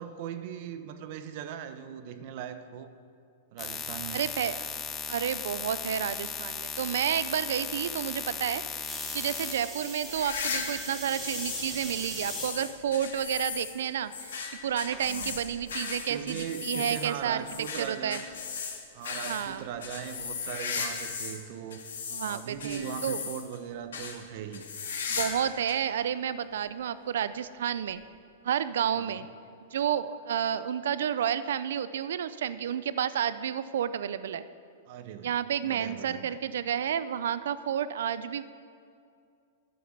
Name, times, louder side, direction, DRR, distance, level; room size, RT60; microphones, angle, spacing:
voice 1, 0.0-2.9 3.5-4.3 15.0-15.4 16.1-18.2 18.9-21.8 22.2-24.6 28.9-29.2 34.9-35.3 35.6-36.4, right 9 dB, 55° right, 10 dB, 0.8 m, -39 dB
sound 1, 3.6-9.5, left 7 dB, 25° left, 1.1 m, -36 dB
voice 2, 4.1-4.7 5.1-14.3 14.6-17.4 17.8-18.2 19.2-19.7 22.1-23.2 25.1-28.0 28.4-29.3 29.7-34.4 35.2-38.4, right 9 dB, 80° right, 14 dB, 0.4 m, -30 dB
sound 2, 8.8-12.5 13.2-13.6 14.9-15.0, right 1 dB, 10° right, 2.7 m, -39 dB
sound 3, 10.0-11.7 12.0-21.4 21.7-23.6 23.9-24.2 24.5-25.4 25.7-25.8 26.6-26.7 27.9-28.0, left 5 dB, 90° left, 1.8 m, -36 dB
12.5 x 6.6 x 6.6 m, 2.4 s
hypercardioid pair, 135°, 0 cm